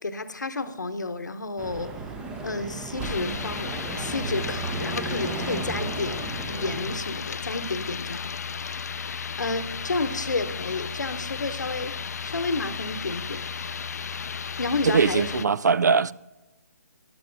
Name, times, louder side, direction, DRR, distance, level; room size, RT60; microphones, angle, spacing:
voice 1, 0.0-2.0 2.4-8.4 8.7-12.0 12.2-13.5 14.6-15.4, left 3 dB, 80° left, 0.9 m, -31 dB
sound 1, 1.6-7.0, right 3 dB, 10° right, 0.6 m, -34 dB
sound 2, 3.0-15.5, left 6 dB, 65° left, 0.4 m, -34 dB
voice 2, 14.8-16.1, right 5 dB, 75° right, 0.4 m, -21 dB
14.0 x 11.0 x 2.6 m
figure-of-eight pair, 145°, 10 cm